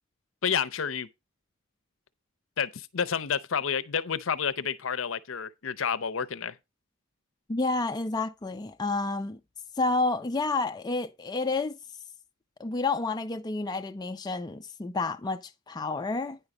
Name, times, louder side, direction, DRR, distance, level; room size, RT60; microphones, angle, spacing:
voice 1, 0.4-1.1 2.6-6.5, left 7 dB, 70° left, 0.7 m, -30 dB
voice 2, 7.5-9.4 9.8-11.8 12.6-16.4, left 3 dB, 20° left, 0.4 m, -30 dB
9.7 x 5.4 x 4.9 m
head